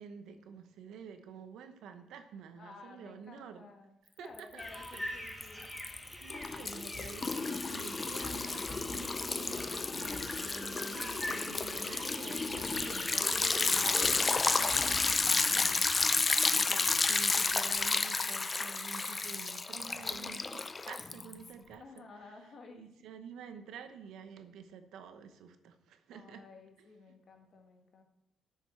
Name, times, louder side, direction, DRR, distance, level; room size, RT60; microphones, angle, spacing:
voice 1, 0.0-3.7 4.2-5.4 5.9-22.4 22.7-26.4 26.8-27.2, right 6 dB, 85° right, 9 dB, 0.9 m, -49 dB
voice 2, 2.6-3.9 4.2-5.7 9.4-10.2 21.8-22.9 26.1-28.0, left 3 dB, 50° left, 3 dB, 1.9 m, -54 dB
Liquid, 4.4-5.0 5.3-21.5, left 3 dB, 30° left, 0.5 m, -31 dB
sound 1, 4.6-16.1, left 1 dB, 10° left, 1.6 m, -45 dB
6.7 x 6.5 x 7.5 m, 0.81 s
cardioid pair, 90°, 0 cm